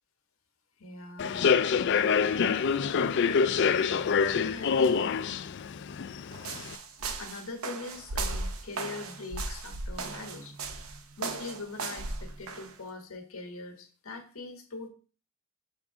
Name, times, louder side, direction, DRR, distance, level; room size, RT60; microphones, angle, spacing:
voice 1, 0.8-1.5 4.3-5.3 7.1-14.9, left 3 dB, 75° left, 5 dB, 1.4 m, -42 dB
Human voice / Subway metro underground, 1.2-6.7, left 6 dB, 55° left, 0.4 m, -26 dB
sound 1, 6.3-12.7, right 3 dB, 75° right, 0.8 m, -36 dB
6.5 x 3.5 x 4.8 m, 0.36 s
head